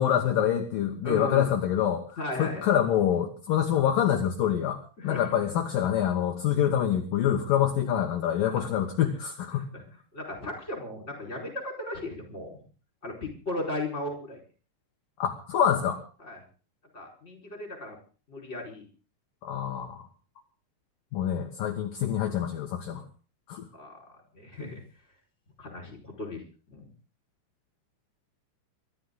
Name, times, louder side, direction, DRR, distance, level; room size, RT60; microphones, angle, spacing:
voice 1, 0.0-9.7 15.2-16.0 19.4-20.1 21.1-23.0 23.5-23.7, left 10 dB, 60° left, 4 dB, 2.8 m, -26 dB
voice 2, 1.0-1.5 2.2-2.7 5.0-5.3 8.5-8.7 9.5-9.8 10.1-12.6 13.0-14.4 16.2-16.4 16.9-18.0 18.3-18.8 23.7-24.0 24.3-24.8 25.6-26.4 26.7-26.8, left 2 dB, 15° left, 1 dB, 4.8 m, -36 dB
23.5 x 13.5 x 3.9 m, 0.38 s
omnidirectional pair, 5.0 m